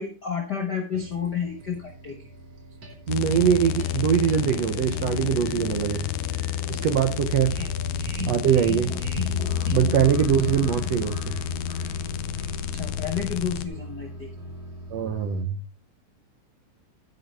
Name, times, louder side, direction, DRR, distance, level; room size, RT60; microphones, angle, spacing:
voice 1, 0.0-2.2 7.6-7.7 12.7-14.3, left 7 dB, 60° left, 3 dB, 1.1 m, -31 dB
sound 1, 0.9-15.4, equal, 50° right, 3.3 m, -37 dB
sound 2, 3.1-13.7, left 12 dB, 75° left, 2.0 m, -30 dB
voice 2, 3.1-6.0 6.7-7.6 8.3-8.9 9.7-11.3 14.9-15.6, right 9 dB, 70° right, 8 dB, 1.6 m, -22 dB
11.0 x 10.0 x 3.4 m, 0.33 s
omnidirectional pair, 3.8 m